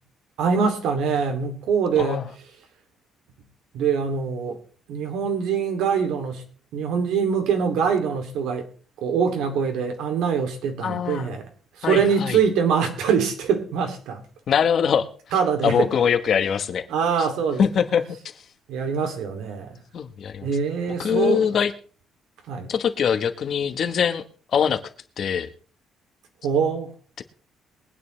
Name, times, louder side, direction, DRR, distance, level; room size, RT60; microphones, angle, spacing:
voice 1, 0.4-2.2 3.7-4.6 4.9-6.4 6.7-8.7 9.0-11.5 11.8-14.2 15.3-15.9 16.9-17.6 18.7-19.8 20.4-21.4 22.5-22.7 26.4-26.9, right 6 dB, 90° right, 2.7 m, -23 dB
voice 2, 10.8-11.3 11.8-12.4 14.5-15.1 15.6-16.9 17.2-17.3 17.6-18.4 19.9-20.5 21.0-21.7 22.7-24.2 24.5-24.8 25.2-25.5 27.2-27.3, left 7 dB, 45° left, 1.1 m, -23 dB
22.5 x 9.3 x 3.3 m
cardioid pair, 165°, 0 cm